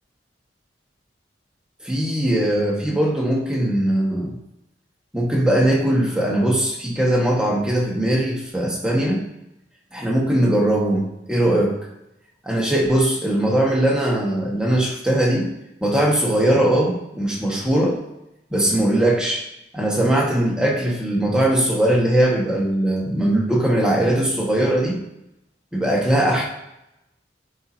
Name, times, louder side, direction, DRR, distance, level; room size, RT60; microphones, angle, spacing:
voice 1, 1.8-4.3 5.1-9.2 9.9-11.8 12.4-15.5 15.8-18.0 18.5-19.5 19.7-25.0 25.7-26.5, right 1 dB, 5° right, -3 dB, 1.5 m, -20 dB
9.3 x 4.3 x 2.8 m, 0.86 s
head